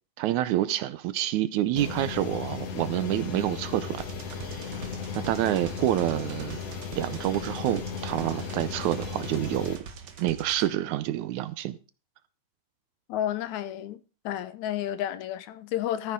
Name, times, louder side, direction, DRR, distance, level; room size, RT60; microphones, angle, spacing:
voice 1, 0.2-4.0 4.4-4.6 5.2-6.6 7.0-9.8 10.2-11.8, right 13 dB, 75° right, 2.0 m, -28 dB
sound 1, 1.8-9.8, left 6 dB, 55° left, 2.4 m, -36 dB
sound 2, 4.0-10.7, right 5 dB, 60° right, 1.1 m, -44 dB
voice 2, 13.1-14.0 14.2-16.1, left 11 dB, 75° left, 2.1 m, -31 dB
14.0 x 9.8 x 3.7 m
omnidirectional pair, 3.6 m